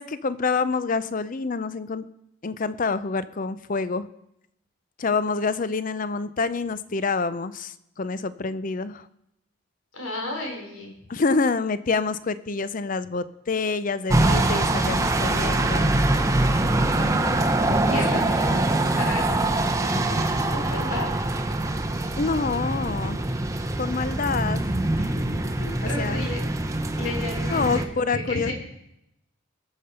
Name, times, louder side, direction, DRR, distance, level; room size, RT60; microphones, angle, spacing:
voice 1, 0.0-2.0 2.4-4.1 5.0-9.0 11.1-15.9 18.1-18.2 22.2-23.2 23.8-24.6 26.0-26.2 27.5-28.5, left 4 dB, 40° left, 15 dB, 0.5 m, -27 dB
voice 2, 9.9-10.9 17.7-21.1 25.0-25.1 25.6-26.4 27.0-28.5, left 2 dB, 90° left, 1 dB, 3.7 m, -33 dB
sound 1, 14.1-27.8, right 2 dB, 15° right, 0.7 m, -24 dB
20.0 x 6.8 x 5.6 m, 0.81 s
head